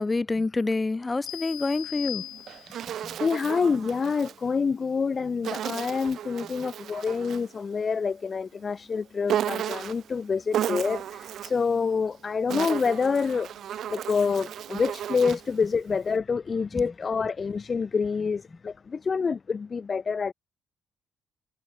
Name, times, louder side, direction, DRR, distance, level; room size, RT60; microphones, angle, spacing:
voice 1, 0.0-2.2 3.0-3.2 15.3-15.4 16.7-16.8, left 3 dB, 25° left, 2.8 m, -27 dB
sound 1, 1.3-3.0, left 15 dB, 90° left, 7.2 m, -38 dB
Insect, 2.2-4.4 5.4-7.5 9.3-10.1 10.5-11.7 12.3-15.5, right 10 dB, 70° right, 5.5 m, -33 dB
voice 2, 3.2-13.5 13.9-20.3, left 5 dB, 40° left, 0.7 m, -27 dB
cardioid pair, 90°, 0 cm